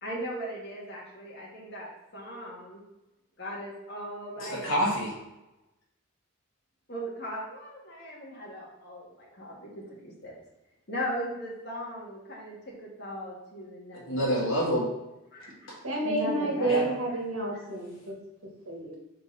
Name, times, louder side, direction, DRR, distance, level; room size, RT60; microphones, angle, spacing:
voice 1, 0.0-2.8 3.4-4.7 6.9-10.3 10.9-14.3 15.3-15.7 16.0-17.0, equal, 50° left, -4 dB, 1.9 m, -38 dB
voice 2, 4.4-5.1 13.9-14.9 15.7-15.8 16.6-16.9, equal, 65° left, -6 dB, 2.0 m, -27 dB
voice 3, 15.8-18.2 18.7-18.9, right 2 dB, 80° right, -1 dB, 1.6 m, -29 dB
4.4 x 4.1 x 5.7 m, 0.96 s
head